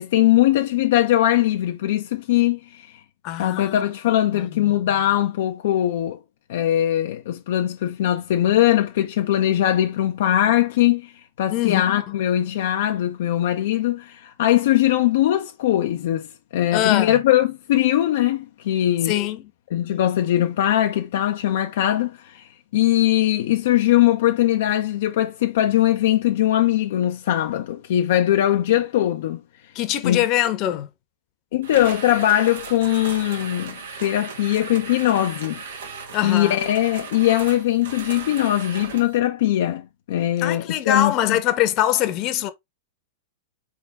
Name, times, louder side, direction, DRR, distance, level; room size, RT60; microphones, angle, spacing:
voice 1, 0.0-3.0 3.4-6.2 6.5-11.1 11.4-16.3 16.5-19.1 19.7-29.4 30.0-30.2 31.5-35.6 36.2-41.4, left 13 dB, 65° left, 0.5 m, -21 dB
voice 2, 3.2-3.8 4.3-4.4 11.5-11.8 16.7-17.2 19.1-19.5 29.7-30.9 36.1-36.6 40.4-42.5, left 12 dB, 40° left, 0.8 m, -23 dB
sound 1, 31.6-39.2, right 5 dB, 70° right, 1.1 m, -37 dB
4.2 x 3.6 x 3.5 m
hypercardioid pair, 105°, 0 cm